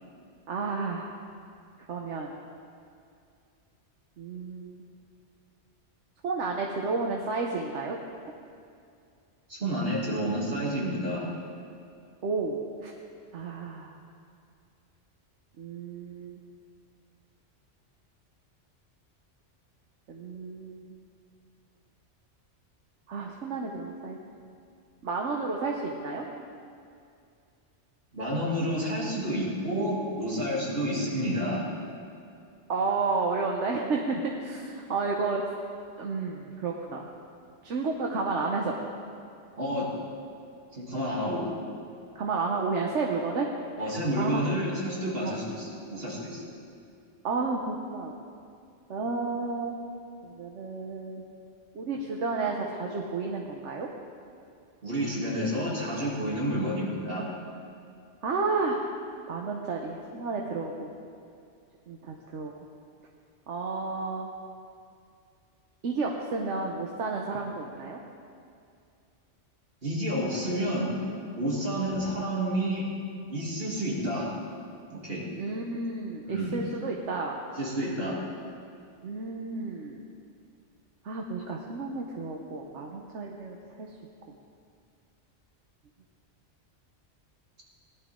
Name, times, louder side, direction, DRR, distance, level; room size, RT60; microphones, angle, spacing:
voice 1, 0.5-1.2 1.9-2.4 4.2-4.8 6.2-8.0 12.2-12.9 13.3-14.0 15.6-16.4 20.1-20.9 23.1-24.2 25.0-26.2 32.7-35.4 36.0-37.1 37.6-38.8 42.1-43.5 43.8-43.9 44.2-44.4 45.2-45.4 47.2-48.1 48.9-49.8 50.2-51.2 51.7-53.9 58.2-58.9 59.3-60.9 61.9-62.5 63.5-64.3 65.8-68.0 75.4-77.4 79.0-80.0 81.0-83.9, right 4 dB, 80° right, 0 dB, 1.2 m, -31 dB
voice 2, 9.5-11.3 28.1-31.7 39.6-39.9 40.7-41.4 43.8-46.4 54.8-57.3 69.8-71.0 71.3-72.9 73.3-74.3 74.9-75.2 76.2-76.6 77.6-78.2, equal, 55° right, -5 dB, 3.0 m, -30 dB
18.5 x 11.5 x 3.7 m, 2.4 s
omnidirectional pair, 1.2 m